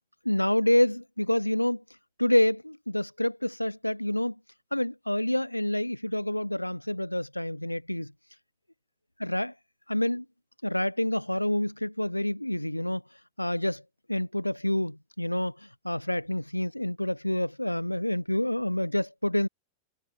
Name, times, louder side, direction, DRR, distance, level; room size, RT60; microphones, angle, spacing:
voice 1, 0.2-1.8 2.2-4.3 4.7-8.1 9.2-9.5 9.9-10.2 10.6-13.0 13.4-13.8 14.1-19.5, left 1 dB, 90° left, 1.5 m, -27 dB
figure-of-eight pair, 90°, 0 cm